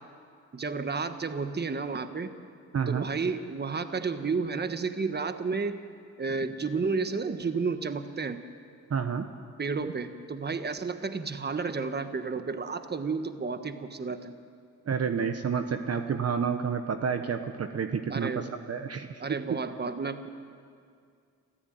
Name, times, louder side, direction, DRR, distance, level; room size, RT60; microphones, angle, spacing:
voice 1, 0.5-2.3 2.9-5.8 6.2-8.4 9.6-14.3 18.1-18.5 19.2-20.3, right 4 dB, 35° right, 9 dB, 1.4 m, -31 dB
voice 2, 2.7-3.0 8.9-9.3 14.9-19.6, right 6 dB, 50° right, 7 dB, 1.2 m, -30 dB
28.0 x 14.5 x 9.3 m, 2.3 s
cardioid pair, 95°, 31 cm